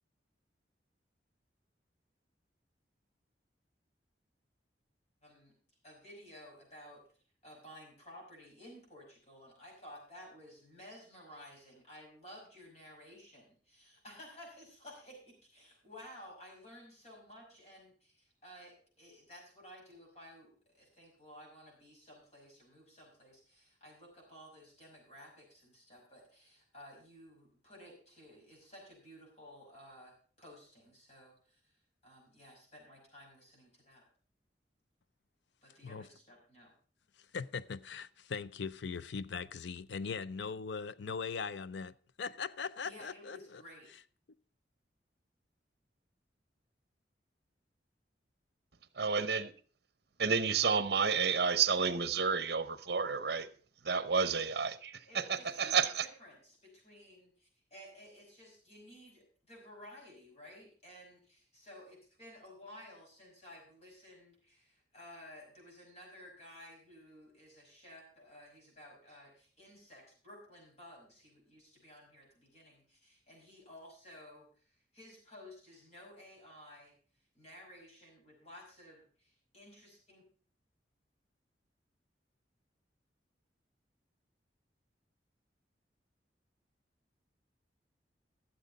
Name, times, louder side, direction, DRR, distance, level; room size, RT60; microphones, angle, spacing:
voice 1, 5.2-5.5 5.8-7.0 7.4-31.8 32.0-34.0 35.6-36.7 42.8-43.9 55.0-76.9 77.3-80.2, equal, 40° left, 5.6 m, -55 dB
voice 2, 37.3-43.6, left 5 dB, 80° left, 0.5 m, -40 dB
voice 3, 49.0-49.5 50.2-53.5 53.8-56.1, right 5 dB, 65° right, 0.8 m, -30 dB
13.0 x 7.5 x 5.2 m
head